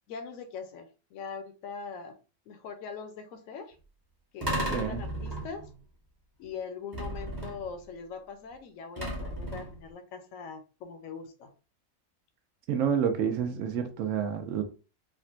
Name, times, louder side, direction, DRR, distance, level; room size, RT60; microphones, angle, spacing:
voice 1, 0.1-2.2 2.5-3.8 4.3-5.7 6.4-11.5, left 5 dB, 75° left, 1.0 m, -41 dB
sound 1, 4.4-5.8 6.9-7.8 9.0-9.9, right 1 dB, 20° right, 1.0 m, -34 dB
voice 2, 4.7-5.0 12.7-14.6, right 8 dB, 70° right, 1.0 m, -29 dB
3.6 x 2.2 x 2.5 m
omnidirectional pair, 1.4 m